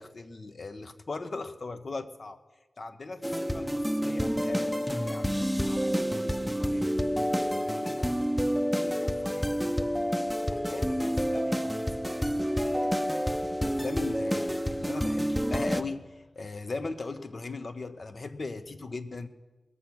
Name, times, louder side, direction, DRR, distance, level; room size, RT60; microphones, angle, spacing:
voice 1, 0.0-2.4 2.8-4.7 5.0-6.9 7.6-9.9 10.5-13.1 13.5-19.3, left 3 dB, 55° left, 9 dB, 0.8 m, -40 dB
sound 1, 3.2-15.8, equal, ahead, 0.6 m, -29 dB
20.5 x 7.1 x 6.1 m, 1.2 s
cardioid pair, 50°, 0 cm